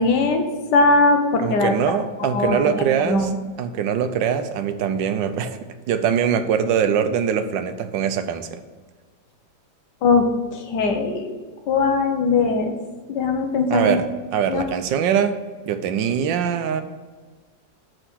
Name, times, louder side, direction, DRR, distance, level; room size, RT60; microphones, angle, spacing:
voice 1, 0.0-1.7 2.2-3.4 10.0-11.4 11.7-12.7 13.1-14.0 14.5-14.6, left 3 dB, 70° left, 4 dB, 1.6 m, -20 dB
voice 2, 1.4-3.3 3.6-5.6 5.9-8.6 13.7-14.1 14.3-15.4 15.7-16.8, right 8 dB, 80° right, 9 dB, 1.4 m, -22 dB
9.1 x 3.9 x 6.2 m, 1.4 s
omnidirectional pair, 2.0 m